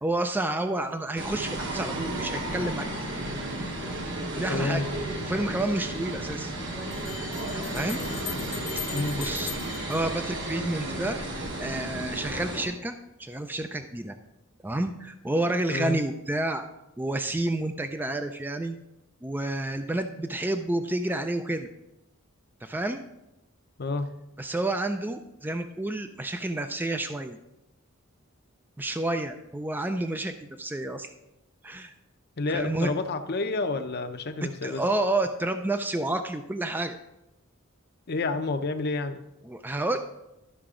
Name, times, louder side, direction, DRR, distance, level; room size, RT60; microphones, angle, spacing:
voice 1, 0.0-2.8 4.3-4.9 5.3-6.5 7.7-8.0 9.1-9.5 9.9-11.2 11.6-14.2 14.6-16.6 17.0-18.8 19.2-21.7 22.6-23.0 24.4-27.4 28.8-31.1 31.6-31.9 32.5-32.9 34.4-37.0 39.4-40.0, right 2 dB, 10° right, 7 dB, 0.4 m, -29 dB
sound 1, 1.2-12.7, right 1 dB, 60° right, 1.5 m, -33 dB
voice 2, 4.5-4.9 8.9-9.2 15.7-16.0 23.8-24.1 32.4-34.8 38.1-39.2, left 3 dB, 50° left, 7 dB, 0.7 m, -29 dB
Bell, 6.9-10.8, left 10 dB, 80° left, 1.3 m, -40 dB
12.5 x 5.8 x 3.7 m, 0.92 s
head